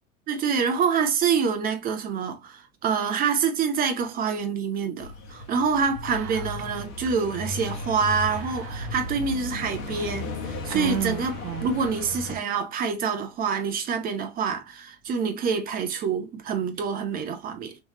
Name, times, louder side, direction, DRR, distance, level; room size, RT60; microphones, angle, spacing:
voice 1, 0.3-17.8, right 6 dB, 20° right, 0.6 m, -26 dB
sound 1, 5.0-12.4, left 2 dB, 60° left, 1.2 m, -35 dB
Whispering, 6.1-6.8 7.1-7.2 8.3-9.2 9.8-9.9 10.7-11.9, right 8 dB, 70° right, 0.7 m, -33 dB
3.3 x 3.0 x 2.7 m
hypercardioid pair, 100°, 44 cm